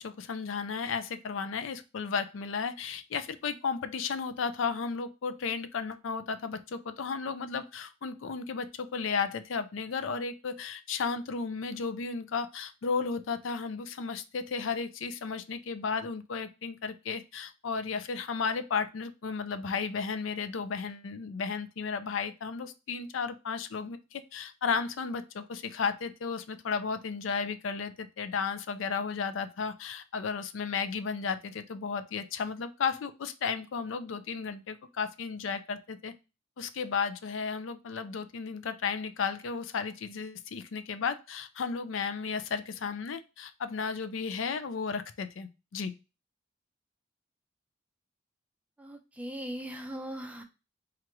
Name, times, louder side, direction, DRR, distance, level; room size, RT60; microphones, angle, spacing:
voice 1, 0.0-36.1 36.6-45.9, left 5 dB, 80° left, 11 dB, 0.4 m, -34 dB
voice 2, 48.8-50.4, equal, 5° right, 5 dB, 0.4 m, -39 dB
4.6 x 2.4 x 2.9 m, 0.29 s
head